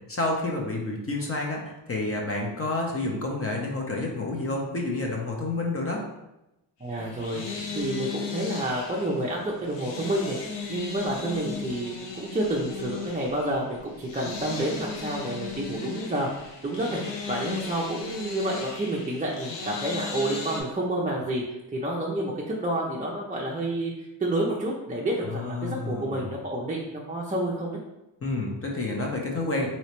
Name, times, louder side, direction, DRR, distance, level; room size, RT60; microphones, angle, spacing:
voice 1, 0.1-6.0 25.2-26.3 28.2-29.7, left 2 dB, 30° left, -1 dB, 0.8 m, -29 dB
voice 2, 6.8-17.0 17.3-21.4 21.7-27.8, right 1 dB, 15° right, -3 dB, 0.5 m, -29 dB
sound 1, 6.9-20.6, left 5 dB, 65° left, 0.8 m, -36 dB
3.1 x 2.9 x 3.0 m, 0.92 s
cardioid pair, 65°, 47 cm